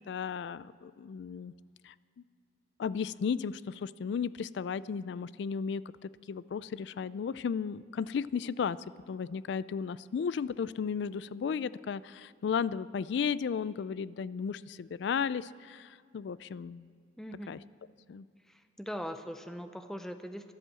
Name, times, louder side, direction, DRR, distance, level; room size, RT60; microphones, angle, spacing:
voice 1, 0.1-1.5 1.8-1.9 2.8-8.8 9.1-16.9 17.5-17.6 18.1-18.3, left 6 dB, 65° left, 18 dB, 0.3 m, -34 dB
voice 2, 17.2-17.7 18.5-20.5, equal, ahead, 8 dB, 0.5 m, -41 dB
12.0 x 11.0 x 7.6 m, 2.2 s
head